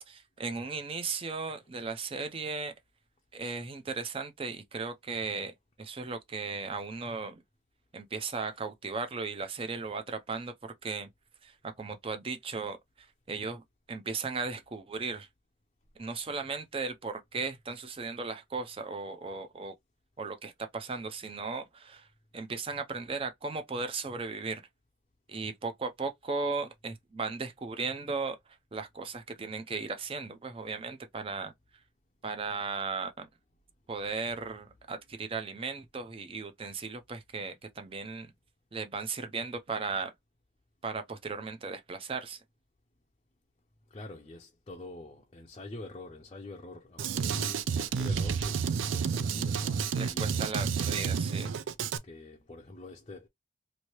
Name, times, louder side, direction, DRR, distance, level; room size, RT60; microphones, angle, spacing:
voice 1, 0.1-2.7 3.3-5.5 5.8-7.4 7.9-11.1 11.4-11.5 11.8-12.8 13.3-13.6 13.9-15.3 16.0-19.7 20.2-22.1 22.3-24.6 25.3-28.4 28.7-31.5 32.2-33.3 33.9-38.3 38.7-40.1 40.8-42.4 49.9-51.5, right 4 dB, 30° right, 0.4 m, -36 dB
voice 2, 43.9-51.2 52.0-53.3, left 2 dB, 30° left, 0.5 m, -46 dB
Drum kit, 47.0-52.0, right 6 dB, 90° right, 0.4 m, -30 dB
3.0 x 2.6 x 2.9 m
head